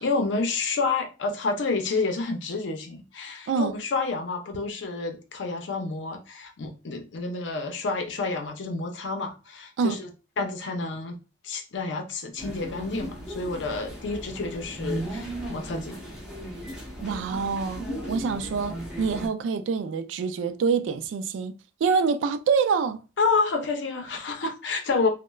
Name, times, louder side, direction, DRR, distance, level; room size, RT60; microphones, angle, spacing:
voice 1, 0.0-10.1 10.4-11.2 11.4-16.0 23.2-25.1, left 3 dB, 80° left, 0.5 m, -29 dB
sound 1, 12.4-19.3, right 1 dB, 5° right, 0.7 m, -36 dB
voice 2, 17.0-21.5 21.8-23.0, right 5 dB, 85° right, 0.3 m, -26 dB
3.0 x 2.1 x 2.2 m
head